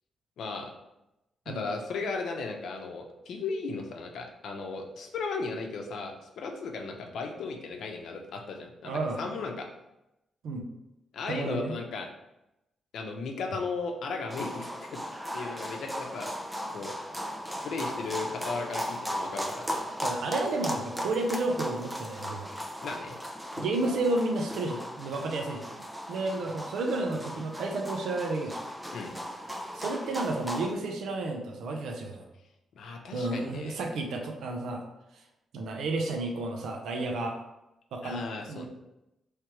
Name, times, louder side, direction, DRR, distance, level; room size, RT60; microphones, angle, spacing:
voice 1, 0.4-0.7 1.5-9.7 11.1-12.1 12.9-15.0 15.3-16.3 16.7-16.9 17.6-19.9 22.8-23.2 28.9-29.1 32.7-33.8 38.0-38.7, left 4 dB, 70° left, 3 dB, 0.7 m, -36 dB
voice 2, 8.8-9.2 10.4-10.7 11.3-11.7 20.0-22.5 23.6-25.6 26.1-28.6 29.7-32.3 33.1-34.9 35.1-35.2 35.5-37.4 37.9-38.2 38.5-38.7, right 2 dB, 75° right, 2 dB, 0.6 m, -31 dB
sound 1, 14.3-30.7, equal, 5° right, 0.4 m, -37 dB
3.3 x 3.0 x 4.6 m, 0.90 s
wide cardioid pair, 160°, 0 cm